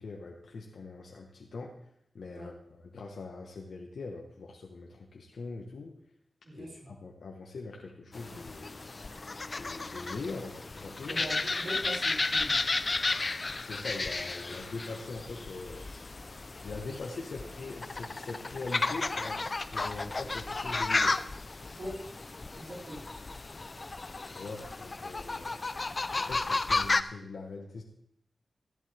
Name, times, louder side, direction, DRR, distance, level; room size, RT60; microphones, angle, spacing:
voice 1, 0.0-1.7 2.1-6.0 6.5-8.8 9.5-11.2 13.5-15.9 16.6-21.2 24.3-25.6 26.1-27.8, left 3 dB, 85° left, 0 dB, 1.2 m, -42 dB
voice 2, 6.4-6.9 11.1-12.6 21.8-22.0 22.6-23.0, equal, 60° right, -4 dB, 5.1 m, -41 dB
sound 1, 8.1-27.0, left 3 dB, 45° left, 0.5 m, -33 dB
14.0 x 11.0 x 3.4 m, 0.73 s
wide cardioid pair, 70°, 0 cm